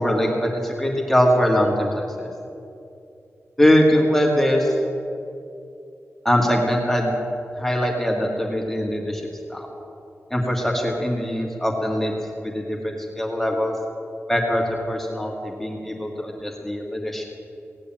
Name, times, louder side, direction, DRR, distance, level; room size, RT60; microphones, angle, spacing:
voice 1, 0.0-2.3 3.6-4.7 6.2-7.1 7.5-9.2 9.5-9.7 10.3-12.1 12.4-13.7 14.3-17.2, equal, 5° left, -1 dB, 1.9 m, -22 dB
17.0 x 8.4 x 9.0 m, 2.7 s
wide cardioid pair, 155°, 5 cm